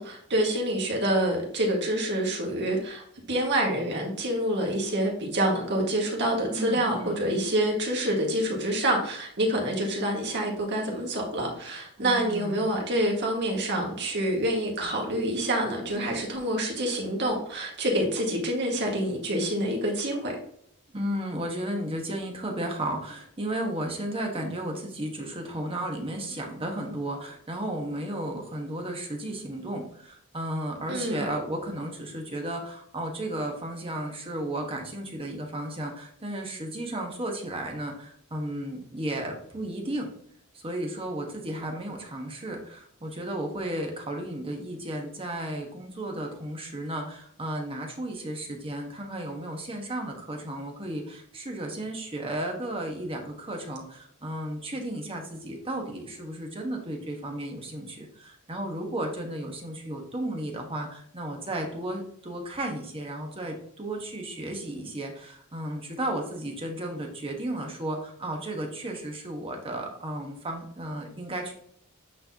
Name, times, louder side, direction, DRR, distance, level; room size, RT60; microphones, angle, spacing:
voice 1, 0.0-20.4 30.9-31.2, right 1 dB, 55° right, 0 dB, 1.8 m, -27 dB
voice 2, 6.5-7.2 12.0-12.6 20.9-40.1 40.5-71.5, right 1 dB, 25° right, 1 dB, 1.2 m, -34 dB
8.5 x 4.2 x 2.8 m, 0.64 s
head